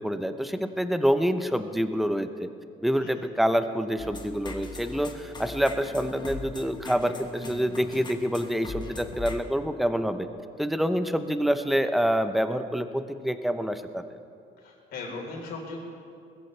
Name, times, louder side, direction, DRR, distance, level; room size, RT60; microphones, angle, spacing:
voice 1, 0.0-2.5 2.8-10.3 10.6-14.0, equal, ahead, 9 dB, 0.7 m, -27 dB
sound 1, 4.0-9.4, left 3 dB, 25° left, 1.4 m, -40 dB
voice 2, 14.6-15.8, left 3 dB, 70° left, -1 dB, 4.0 m, -38 dB
20.5 x 14.5 x 3.3 m, 2.4 s
cardioid pair, 110°, 17 cm